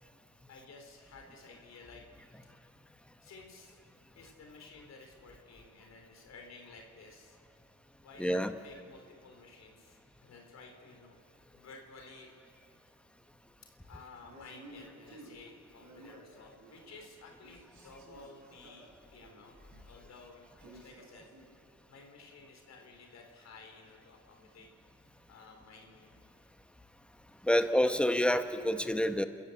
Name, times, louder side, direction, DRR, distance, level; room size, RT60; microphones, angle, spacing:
voice 1, 0.5-2.0 3.2-3.8 4.1-7.4 8.0-11.2 11.5-12.3 13.9-19.6 19.8-20.4 20.7-21.3 21.9-24.7 25.3-26.2 27.7-27.8, left 3 dB, 60° left, 2 dB, 3.6 m, -53 dB
voice 2, 8.2-8.5 27.4-29.2, equal, 5° left, 8 dB, 1.2 m, -27 dB
Male speech man speaking, 14.2-17.1 17.4-21.5, right 1 dB, 70° right, 7.5 m, -55 dB
30.0 x 14.0 x 8.6 m, 2.4 s
cardioid pair, 90°, 30 cm